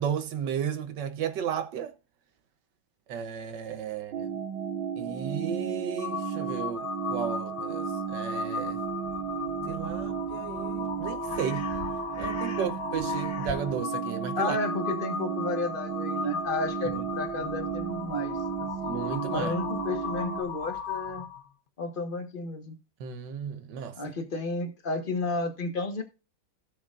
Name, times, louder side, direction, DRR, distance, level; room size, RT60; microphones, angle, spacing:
voice 1, 0.0-1.9 3.1-4.3 5.0-8.8 9.7-11.6 12.2-14.6 16.9-17.0 18.9-19.5 23.0-24.0, right 8 dB, 70° right, 1.5 m, -34 dB
sound 1, 4.1-20.4, right 7 dB, 85° right, 1.6 m, -34 dB
Crow, 6.0-21.5, left 6 dB, 80° left, 0.4 m, -37 dB
voice 2, 14.4-18.9 19.3-21.2 21.8-22.8 23.9-26.0, left 3 dB, 30° left, 1.4 m, -32 dB
17.0 x 6.6 x 2.5 m
omnidirectional pair, 2.1 m